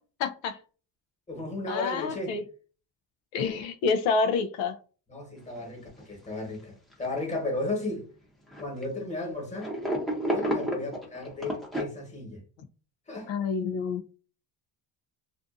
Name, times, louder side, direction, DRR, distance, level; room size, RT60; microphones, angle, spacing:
voice 1, 0.2-0.6 1.7-2.4 3.3-4.7 13.3-14.0, left 5 dB, 90° left, 0.5 m, -28 dB
voice 2, 1.3-2.4 5.1-8.1 8.6-9.7 10.2-12.4 13.1-13.3, left 2 dB, 15° left, 1.2 m, -34 dB
sound 1, 5.6-5.7 6.0-6.1 6.9-7.6 8.5-8.8 9.6-11.8, right 1 dB, ahead, 0.6 m, -31 dB
2.5 x 2.5 x 2.4 m
cardioid pair, 115°, 44 cm